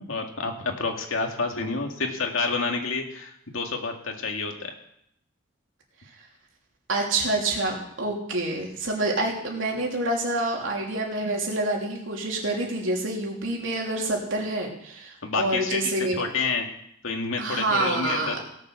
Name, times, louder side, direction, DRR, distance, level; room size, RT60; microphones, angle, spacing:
voice 1, 0.0-4.7 15.2-16.7 17.0-18.4, left 4 dB, 90° left, 3 dB, 2.0 m, -29 dB
voice 2, 6.9-16.3 17.4-18.4, right 2 dB, 75° right, -1 dB, 3.2 m, -27 dB
17.5 x 7.0 x 6.2 m, 0.73 s
head